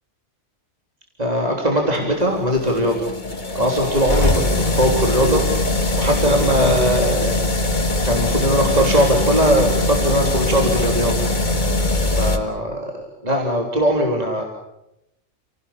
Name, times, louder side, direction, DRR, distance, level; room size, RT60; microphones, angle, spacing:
voice 1, 1.2-3.1 3.5-5.4 6.0-7.3 8.0-11.1 12.1-14.4, equal, 35° right, 1 dB, 3.6 m, -20 dB
sound 1, 2.0-12.4, left 2 dB, 40° left, 2.2 m, -21 dB
30.0 x 18.5 x 8.6 m, 0.86 s
omnidirectional pair, 1.2 m